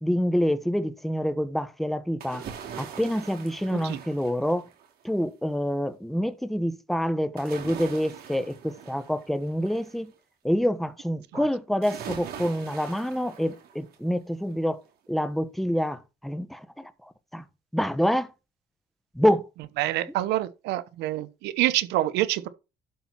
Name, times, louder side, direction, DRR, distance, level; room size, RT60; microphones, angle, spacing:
voice 1, 0.0-2.4 2.8-4.7 5.0-10.1 10.4-14.8 15.1-16.9 17.3-17.4 17.7-18.3 19.1-19.4, equal, ahead, 1.1 m, -27 dB
sound 1, 2.2-5.0 7.4-10.0 11.8-14.1 14.5-14.6, right 8 dB, 65° right, 3.2 m, -42 dB
voice 2, 19.8-22.5, right 15 dB, 85° right, 1.0 m, -26 dB
12.0 x 4.1 x 5.8 m
cardioid pair, 110°, 17 cm